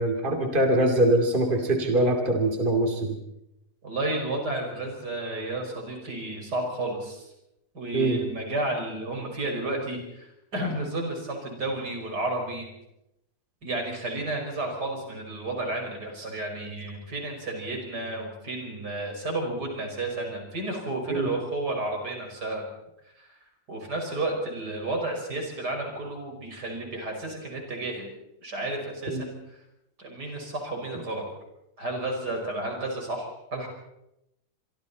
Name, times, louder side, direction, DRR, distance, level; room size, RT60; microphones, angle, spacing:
voice 1, 0.0-3.2 7.9-8.2 21.1-21.3 29.1-29.2, right 1 dB, 30° right, 4 dB, 2.8 m, -23 dB
voice 2, 3.8-7.3 7.7-12.7 13.6-22.7 23.2-23.4 23.7-28.1 28.4-29.6 30.0-31.3 31.8-33.7, right 2 dB, 80° right, 2 dB, 5.8 m, -32 dB
26.0 x 24.5 x 4.2 m, 0.85 s
omnidirectional pair, 1.7 m